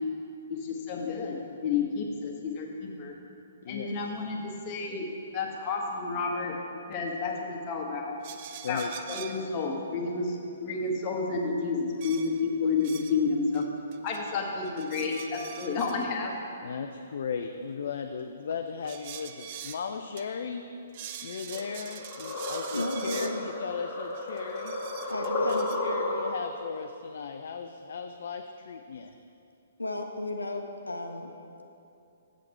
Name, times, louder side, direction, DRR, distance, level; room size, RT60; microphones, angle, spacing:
voice 1, 0.5-3.1 3.7-5.1 5.3-6.5 6.9-8.1 8.7-8.8 9.1-13.6 14.0-16.3, left 4 dB, 30° left, 0 dB, 1.2 m, -30 dB
sound 1, 8.2-9.5 12.0-13.2 13.5-14.3 14.6-16.1 18.8-19.8 20.2-20.3 20.5-20.6 20.9-23.4 24.1-25.8, right 9 dB, 40° right, 0.4 m, -44 dB
voice 2, 16.6-20.6 21.2-24.7 25.2-29.1, left 6 dB, 55° left, 5 dB, 0.3 m, -36 dB
sound 2, 21.5-26.6, left 2 dB, 10° left, 1.9 m, -33 dB
voice 3, 22.7-23.4 25.1-25.6 29.8-31.3, left 2 dB, 85° left, 3 dB, 0.7 m, -34 dB
7.7 x 7.1 x 4.4 m, 2.7 s
figure-of-eight pair, 125°, 0 cm